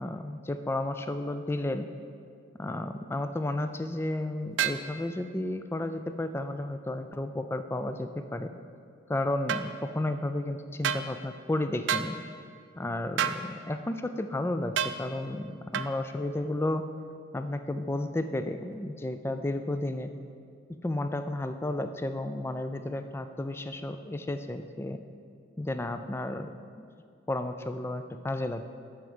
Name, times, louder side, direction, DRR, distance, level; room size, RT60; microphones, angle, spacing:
voice 1, 0.0-1.9 2.6-8.5 9.1-12.2 12.8-16.8 17.3-20.1 20.8-25.0 25.6-26.5 26.8-26.9 27.3-28.6, left 1 dB, 15° left, 8 dB, 0.3 m, -32 dB
sound 1, 4.6-4.8 9.5-9.7 10.8-11.1 11.9-12.1 13.2-13.4 14.8-15.0 15.7-15.9, right 8 dB, 70° right, 0.4 m, -28 dB
11.0 x 4.5 x 5.5 m, 2.3 s
head